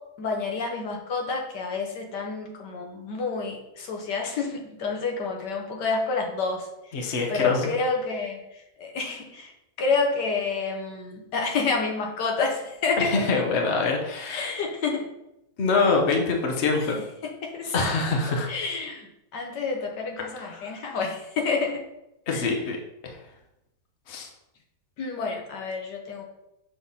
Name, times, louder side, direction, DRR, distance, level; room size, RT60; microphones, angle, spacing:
voice 1, 0.2-7.0 7.3-9.5 9.8-13.4 14.3-15.1 16.7-16.9 17.2-17.7 18.5-21.8 22.3-22.5 25.0-26.2, left 4 dB, 80° left, 2 dB, 1.6 m, -29 dB
voice 2, 6.9-7.7 13.0-14.6 15.6-17.0 17.7-18.5 20.4-20.7 22.3-22.8 23.0-23.2 24.1-24.3, left 4 dB, 45° left, 1 dB, 1.1 m, -25 dB
6.3 x 3.5 x 5.5 m, 0.88 s
omnidirectional pair, 1.8 m